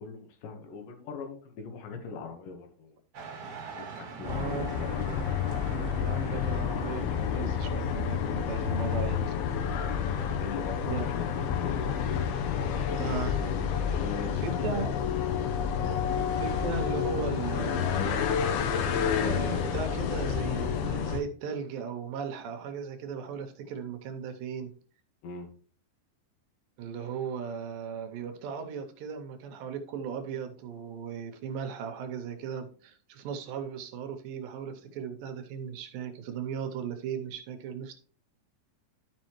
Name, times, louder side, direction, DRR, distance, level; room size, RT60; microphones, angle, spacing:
voice 1, 0.0-3.0 3.7-5.6 8.8-9.2 10.1-11.9 13.9-14.9 15.8-16.0 25.2-25.5, left 5 dB, 65° left, 5 dB, 2.7 m, -40 dB
sound 1, 3.1-7.5, right 5 dB, 50° right, 1.9 m, -44 dB
sound 2, 4.2-21.2, left 7 dB, 90° left, 2.9 m, -29 dB
voice 2, 4.2-4.7 5.7-9.4 10.8-11.1 13.0-13.4 13.7-13.8 14.4-14.9 16.4-18.4 19.2-24.8 26.8-37.9, right 6 dB, 75° right, 6 dB, 2.4 m, -37 dB
12.0 x 5.4 x 3.0 m, 0.43 s
omnidirectional pair, 4.4 m